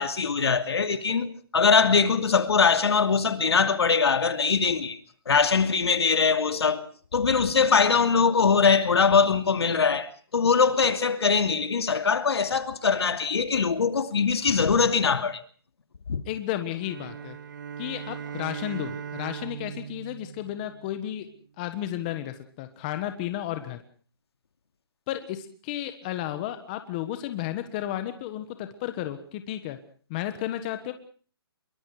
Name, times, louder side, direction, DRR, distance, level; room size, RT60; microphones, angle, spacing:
voice 1, 0.0-5.0 5.3-6.8 7.1-15.4 16.1-16.2, left 5 dB, 80° left, 2.6 m, -22 dB
voice 2, 16.3-17.4 17.8-21.3 21.6-23.8 25.1-29.8 30.1-30.9, left 12 dB, 20° left, 1.3 m, -33 dB
sound 1, 16.8-21.2, right 7 dB, 50° right, 1.6 m, -39 dB
24.5 x 23.0 x 4.9 m
hypercardioid pair, 170°, 13 cm